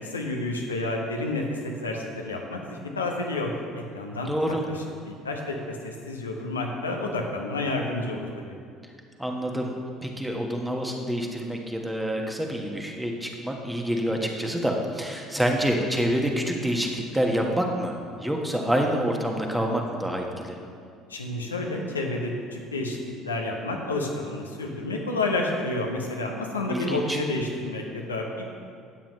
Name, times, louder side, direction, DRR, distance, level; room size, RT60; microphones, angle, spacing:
voice 1, 0.0-3.5 3.9-8.6 21.1-28.4, left 2 dB, 85° left, 1 dB, 1.0 m, -30 dB
voice 2, 4.3-4.6 9.2-9.7 10.0-20.6 26.7-27.2, equal, 5° right, 1 dB, 1.4 m, -27 dB
13.0 x 9.0 x 3.2 m, 2.2 s
figure-of-eight pair, 60°, 0 cm